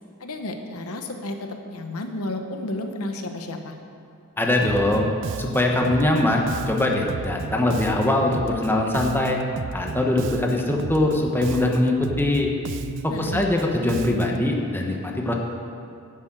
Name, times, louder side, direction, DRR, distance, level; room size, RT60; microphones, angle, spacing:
voice 1, 0.2-3.7 13.1-13.4, left 2 dB, 70° left, 5 dB, 1.0 m, -32 dB
voice 2, 4.4-5.1 5.4-9.4 9.7-12.5 13.0-15.3, left 1 dB, 10° left, 0 dB, 1.1 m, -22 dB
Bass guitar, 4.6-14.5, right 5 dB, 55° right, 0.4 m, -33 dB
10.5 x 7.9 x 7.9 m, 2.5 s
head